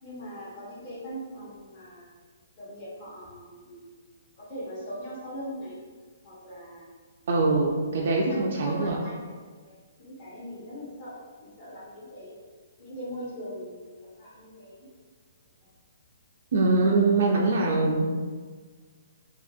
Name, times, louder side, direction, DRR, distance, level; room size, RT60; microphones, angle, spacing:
voice 1, 0.0-2.1 2.6-3.8 4.4-5.8 6.2-6.9 8.0-9.7 10.0-12.3 12.8-14.9, equal, 30° left, -7 dB, 0.9 m, -40 dB
voice 2, 7.3-9.0 16.5-18.1, right 3 dB, 55° right, -1 dB, 0.3 m, -23 dB
2.7 x 2.6 x 2.4 m, 1.5 s
hypercardioid pair, 170°, 0 cm